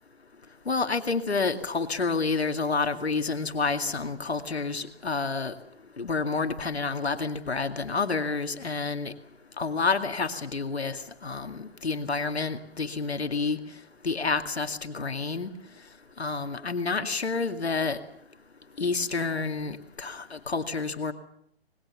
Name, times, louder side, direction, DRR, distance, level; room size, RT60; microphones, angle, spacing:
voice 1, 0.7-5.5 6.0-9.1 9.6-13.6 14.0-15.5 16.2-18.0 18.8-21.1, left 4 dB, 85° left, 8 dB, 2.2 m, -29 dB
26.5 x 21.5 x 7.1 m, 0.71 s
figure-of-eight pair, 140°, 31 cm